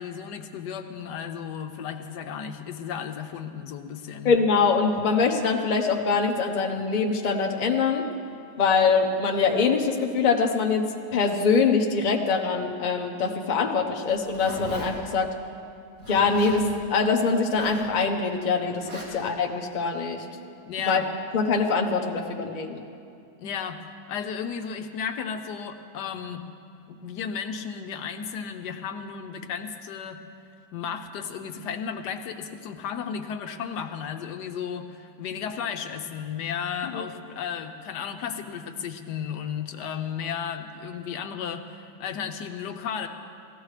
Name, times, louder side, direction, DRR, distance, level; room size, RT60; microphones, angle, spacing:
voice 1, 0.0-4.3 20.6-21.1 23.4-23.8 24.1-26.4 26.9-30.2 30.7-43.1, left 7 dB, 75° left, 7 dB, 1.2 m, -34 dB
voice 2, 4.2-8.0 8.6-15.3 16.1-20.2 20.8-21.0 21.3-22.8 36.9-37.0, left 5 dB, 35° left, 2 dB, 0.7 m, -23 dB
Zipper (clothing), 14.0-14.9 16.0-16.6 17.4-17.9 18.8-19.1, right 1 dB, 60° right, 3.2 m, -39 dB
17.5 x 15.0 x 3.2 m, 2.5 s
omnidirectional pair, 1.8 m